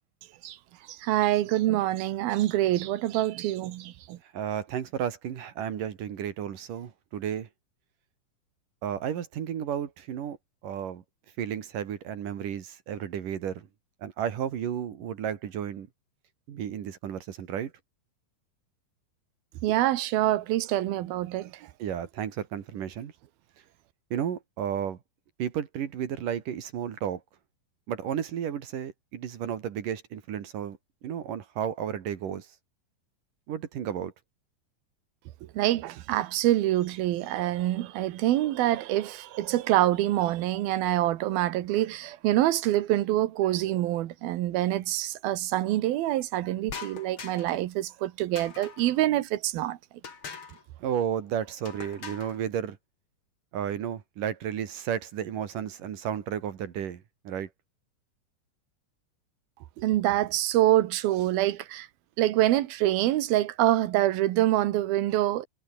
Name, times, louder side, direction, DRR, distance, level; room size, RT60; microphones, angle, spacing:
voice 1, 0.9-4.2 19.6-21.7 35.5-49.8 59.8-61.9 62.2-65.5, right 14 dB, 85° right, 3.0 m, -26 dB
voice 2, 4.3-7.5 8.8-10.4 10.6-11.0 11.4-13.7 14.0-15.9 16.5-17.7 21.8-23.1 24.1-25.0 25.4-27.2 27.9-30.8 31.0-32.5 33.5-34.1 50.8-52.8 53.5-57.5, right 9 dB, 65° right, 3.5 m, -33 dB
sound 1, 46.7-47.6 48.4-49.0 50.0-50.6 51.6-52.4, left 5 dB, 35° left, 3.2 m, -42 dB
omnidirectional pair, 4.2 m